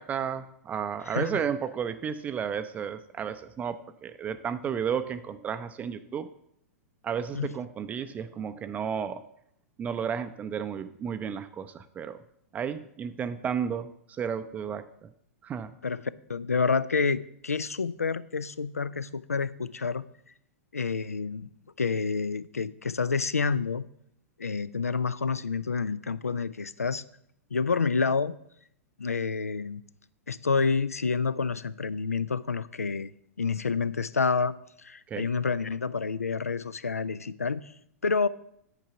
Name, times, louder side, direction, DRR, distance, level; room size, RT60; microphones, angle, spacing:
voice 1, 0.0-6.3 7.0-9.2 9.8-12.2 12.5-15.1 15.4-15.7 35.1-35.3, right 7 dB, 20° right, 10 dB, 0.4 m, -33 dB
voice 2, 16.3-20.1 20.7-21.5 21.8-23.9 24.4-27.0 27.5-28.3 29.0-29.8 30.3-33.1 33.4-37.6 38.0-38.3, left 5 dB, 80° left, 18 dB, 0.4 m, -28 dB
9.1 x 4.7 x 6.7 m, 0.72 s
figure-of-eight pair, 100°, 8 cm